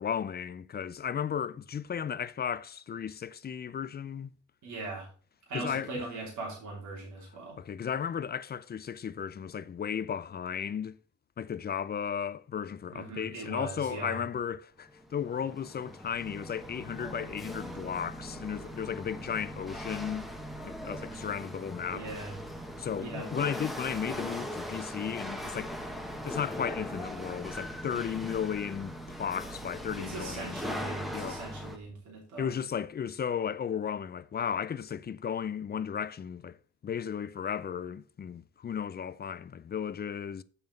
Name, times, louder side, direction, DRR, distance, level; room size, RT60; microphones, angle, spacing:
voice 1, 0.0-4.3 5.5-5.9 7.6-11.0 11.4-20.3 20.6-22.1 22.8-25.8 26.2-30.6 31.1-31.4 32.4-36.6 36.8-40.4, left 8 dB, 35° left, 0.5 m, -35 dB
voice 2, 4.6-5.1 5.5-7.6 12.9-14.2 21.9-22.4 23.0-23.3 30.0-32.5, right 3 dB, 70° right, 3.1 m, -40 dB
Chatter / Hiss / Rattle, 14.9-31.8, equal, ahead, 1.1 m, -40 dB
7.0 x 5.7 x 5.3 m
cardioid pair, 90°, 30 cm